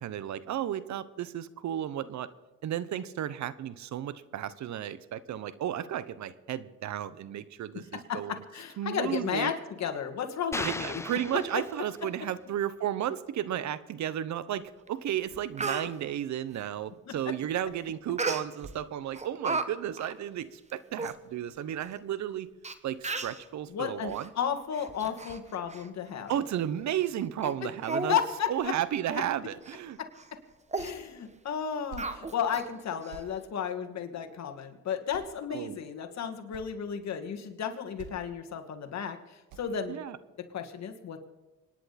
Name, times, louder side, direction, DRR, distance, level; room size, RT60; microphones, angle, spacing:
voice 1, 0.0-2.3 2.6-8.4 8.8-9.5 10.6-22.5 22.8-24.3 26.3-28.2 28.5-30.0 35.5-35.8 39.9-40.2, right 11 dB, 70° right, 16 dB, 0.9 m, -33 dB
voice 2, 8.1-11.0 17.1-17.2 23.7-26.4 28.1-28.7 29.1-29.2 30.0-30.1 30.7-40.0 40.4-41.2, left 8 dB, 60° left, 6 dB, 2.2 m, -33 dB
sound 1, 10.5-12.3, left 3 dB, 10° left, 0.4 m, -38 dB
Speech, 14.9-15.0 15.3-15.9 18.2-18.7 19.1-19.7 20.0-20.1 20.7-20.8 21.0-21.1 21.9-22.0 22.6-22.7 23.0-23.4 24.1-24.3 24.7-25.4 25.7-25.9 26.3-26.4 26.9-27.1 27.4-27.5 27.8-28.2 28.6-28.7 29.1-29.3 29.6-29.8 30.2-30.3 30.7-30.9 32.0-32.6 33.0-33.1, right 3 dB, 25° right, 1.3 m, -34 dB
sound 2, 30.8-31.1 31.4-32.2 32.5-32.7 33.1-33.3 34.5-34.6 35.1-35.6 36.0-36.1 36.3-36.7 37.5-37.6 38.0-38.4 38.7-38.9 39.5-39.8, right 5 dB, 85° right, 1.6 m, -48 dB
26.0 x 10.5 x 4.3 m, 1.1 s
cardioid pair, 90°, 30 cm